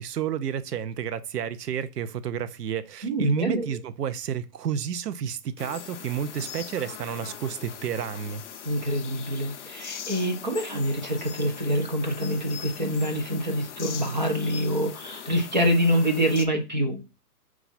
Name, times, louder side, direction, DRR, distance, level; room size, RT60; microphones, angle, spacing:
voice 1, 0.0-8.4, right 8 dB, 80° right, 0.6 m, -31 dB
voice 2, 3.0-3.7 8.6-17.0, equal, 30° right, 0.4 m, -26 dB
sound 1, 5.6-16.5, left 8 dB, 50° left, 0.5 m, -41 dB
4.7 x 2.4 x 4.0 m
hypercardioid pair, 160°, 48 cm